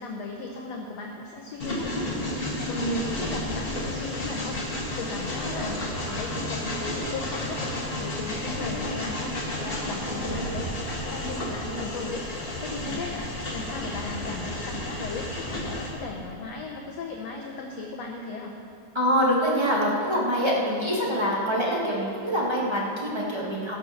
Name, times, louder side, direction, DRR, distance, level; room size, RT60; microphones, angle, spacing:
voice 1, 0.0-18.6, left 3 dB, 70° left, 0 dB, 1.7 m, -36 dB
Train, 1.6-15.9, left 1 dB, 30° left, 1.1 m, -32 dB
voice 2, 5.4-5.7 8.5-9.1 10.1-10.5 12.7-12.9 18.9-23.8, equal, 20° right, -5 dB, 0.8 m, -26 dB
17.5 x 7.0 x 5.8 m, 2.7 s
omnidirectional pair, 3.9 m